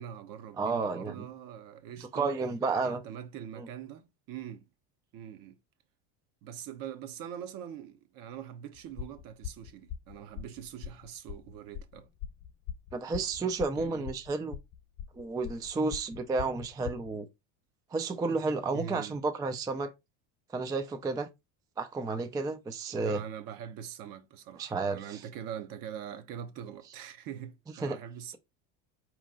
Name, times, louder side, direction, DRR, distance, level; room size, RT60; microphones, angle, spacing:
voice 1, 0.0-2.3 2.8-4.7 5.1-5.6 6.4-12.1 13.8-14.1 18.7-19.2 23.0-28.4, right 9 dB, 55° right, 0.9 m, -43 dB
voice 2, 0.6-1.3 2.1-3.0 3.6-3.7 12.9-14.6 15.1-17.3 17.9-19.9 20.5-21.3 21.8-23.2 24.6-25.2 27.8-28.0, right 3 dB, 10° right, 0.3 m, -31 dB
sound 1, 8.8-17.1, left 9 dB, 60° left, 0.9 m, -42 dB
4.4 x 3.0 x 3.7 m
supercardioid pair, 115°, 41 cm